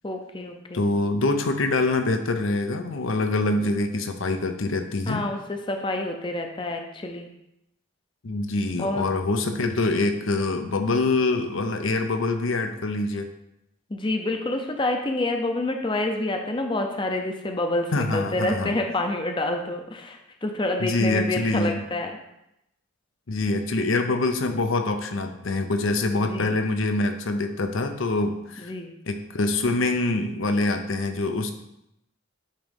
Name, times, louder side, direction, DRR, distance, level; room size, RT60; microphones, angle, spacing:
voice 1, 0.0-0.9 5.1-7.3 8.8-9.1 10.3-10.4 13.9-22.1 26.2-26.6 28.6-28.9, left 2 dB, 25° left, 4 dB, 0.6 m, -28 dB
voice 2, 0.7-5.2 8.2-13.3 17.9-18.7 20.8-21.8 23.3-28.7 29.1-31.5, left 2 dB, 75° left, 6 dB, 0.7 m, -25 dB
9.1 x 3.1 x 5.2 m, 0.83 s
head